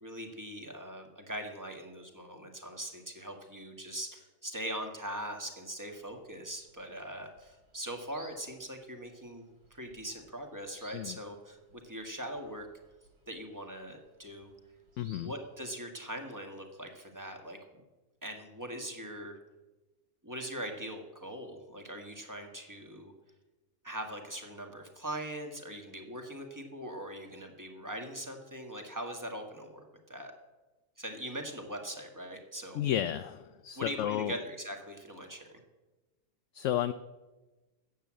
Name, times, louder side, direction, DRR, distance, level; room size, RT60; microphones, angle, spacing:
voice 1, 0.0-9.4 9.7-12.7 13.3-14.5 15.1-17.8 18.2-19.4 20.2-23.1 23.8-30.3 31.0-32.8 33.7-35.5, right 1 dB, 15° right, 3 dB, 1.5 m, -41 dB
sound 1, 5.8-15.8, right 1 dB, 90° right, 3.5 m, -62 dB
voice 2, 15.0-15.3 32.7-34.3 36.5-36.9, left 11 dB, 70° left, 11 dB, 0.8 m, -32 dB
13.5 x 8.2 x 7.5 m, 1.2 s
omnidirectional pair, 1.6 m